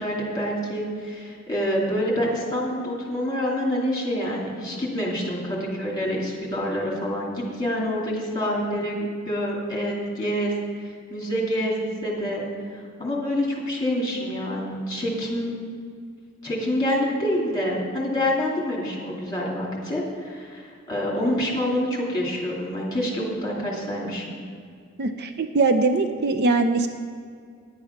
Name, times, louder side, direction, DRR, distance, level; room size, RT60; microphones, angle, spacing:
voice 1, 0.0-10.5 11.1-12.4 12.7-15.5 16.4-24.2, equal, 20° left, -3 dB, 2.6 m, -27 dB
voice 2, 25.0-26.9, right 3 dB, 50° right, 7 dB, 0.5 m, -21 dB
10.0 x 8.4 x 5.8 m, 2.2 s
head